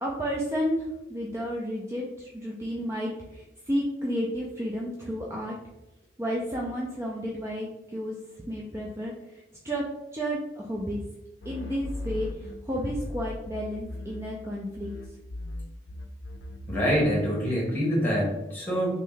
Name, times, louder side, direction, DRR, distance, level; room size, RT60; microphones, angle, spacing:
voice 1, 0.0-5.6 6.2-8.1 8.5-9.8 10.1-11.0 11.5-14.9, equal, 15° right, -3 dB, 0.4 m, -32 dB
sound 1, 11.4-14.5 14.8-17.3, left 2 dB, 90° left, 0.5 m, -38 dB
voice 2, 16.7-18.9, equal, 10° left, -5 dB, 1.3 m, -25 dB
3.1 x 2.7 x 3.5 m, 0.95 s
head